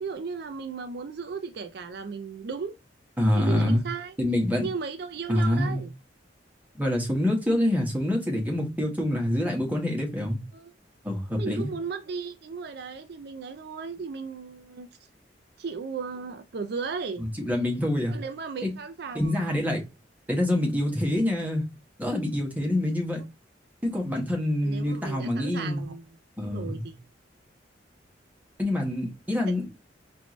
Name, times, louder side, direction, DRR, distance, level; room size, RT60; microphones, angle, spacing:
voice 1, 0.0-2.8 3.3-4.1 4.6-5.9 10.5-10.7 11.4-14.9 15.6-17.2 18.1-19.7 24.6-26.0 26.4-27.0 29.5-29.6, right 5 dB, 60° right, 0.4 m, -36 dB
voice 2, 3.2-3.8 4.2-4.7 5.3-5.8 6.8-10.4 11.0-11.7 17.2-18.2 18.6-18.7 19.1-19.8 20.3-21.6 22.0-23.2 23.8-25.9 26.4-26.9 28.6-29.7, left 1 dB, 10° right, 1.2 m, -26 dB
4.3 x 2.6 x 3.1 m
head